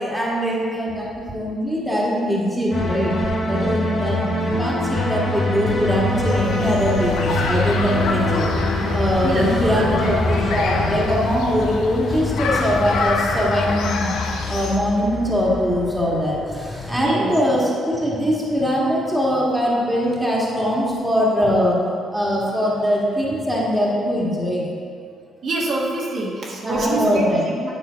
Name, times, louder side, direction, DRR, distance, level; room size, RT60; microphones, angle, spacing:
voice 1, 0.0-3.1 3.5-8.4 8.9-14.1 14.5-21.8 22.1-24.7 26.6-27.4, equal, 5° right, -5 dB, 1.7 m, -22 dB
sound 1, 2.7-11.2, left 1 dB, 45° left, 1.7 m, -24 dB
sound 2, 5.6-17.1, left 3 dB, 30° left, 0.4 m, -29 dB
sound 3, 6.3-14.8, left 4 dB, 80° left, 0.7 m, -29 dB
voice 2, 9.2-10.4 17.0-17.3 25.4-27.7, right 2 dB, 55° right, -4 dB, 1.4 m, -25 dB
9.2 x 3.8 x 5.1 m, 2.3 s
cardioid pair, 95°, 0 cm